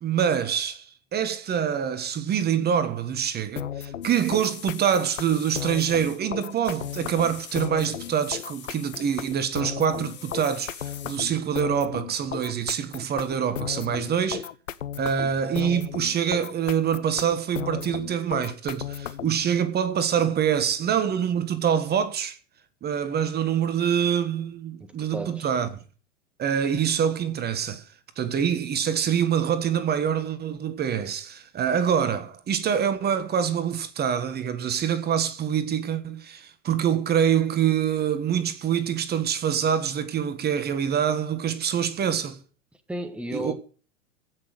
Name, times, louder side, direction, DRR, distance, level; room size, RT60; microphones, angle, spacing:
voice 1, 0.0-14.5 15.0-22.4 22.8-25.7 26.4-27.8 28.2-42.4 43.3-43.5, right 8 dB, 25° right, 1.5 m, -25 dB
sound 1, 3.6-19.4, left 9 dB, 85° left, 0.9 m, -35 dB
sound 2, 4.0-9.4 9.9-11.2, left 10 dB, 30° left, 2.0 m, -45 dB
voice 2, 24.8-25.5 42.9-43.5, right 1 dB, 5° right, 1.5 m, -33 dB
15.5 x 6.5 x 7.8 m
hypercardioid pair, 100°, 37 cm